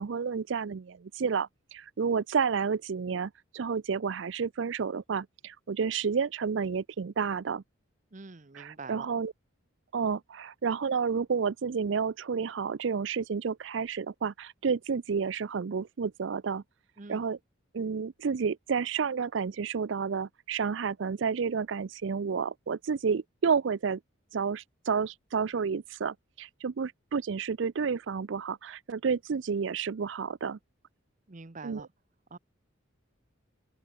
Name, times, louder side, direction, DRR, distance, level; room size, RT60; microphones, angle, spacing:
voice 1, 0.0-7.6 8.5-9.3 9.9-16.6 17.1-17.4 17.7-24.0 24.3-30.6 31.6-31.8, right 6 dB, 65° right, 0.5 m, -30 dB
voice 2, 8.1-9.1 17.0-17.2 31.3-31.9 32.3-32.4, right 3 dB, 40° right, 0.8 m, -45 dB
open air
head